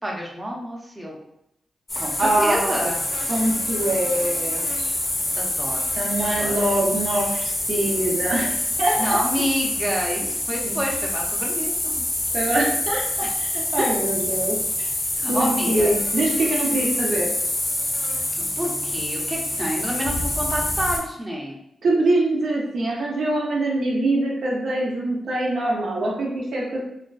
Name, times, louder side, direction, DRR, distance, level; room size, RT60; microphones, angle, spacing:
voice 1, 0.0-1.2 2.0-3.0 5.4-5.9 6.2-6.6 9.0-12.0 13.2-13.3 13.8-13.9 15.2-15.9 18.4-21.6, equal, 20° right, -2 dB, 0.6 m, -28 dB
sound 1, 1.9-21.0, left 1 dB, 40° left, 0.7 m, -26 dB
voice 2, 2.2-2.9 3.3-5.0 6.0-9.0 10.6-10.7 12.3-13.0 13.4-14.9 15.3-17.3 21.8-26.8, right 1 dB, 70° right, -3 dB, 0.5 m, -24 dB
2.4 x 2.2 x 2.3 m, 0.80 s
cardioid pair, 70°, 0 cm